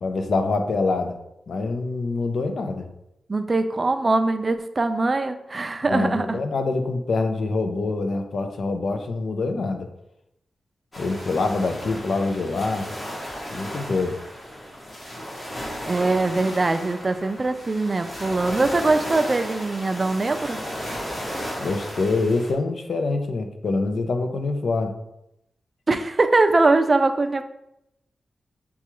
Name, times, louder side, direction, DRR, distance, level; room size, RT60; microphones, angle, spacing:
voice 1, 0.0-1.2 1.5-2.9 5.9-9.9 11.0-12.9 13.5-14.2 21.6-25.0, left 3 dB, 65° left, 6 dB, 0.5 m, -25 dB
voice 2, 3.3-6.4 15.9-20.6 25.9-27.4, right 3 dB, 30° right, 8 dB, 0.3 m, -22 dB
sound 1, 10.9-22.5, equal, 30° left, 1.2 m, -34 dB
6.8 x 2.3 x 3.0 m, 0.85 s
wide cardioid pair, 110°, 0 cm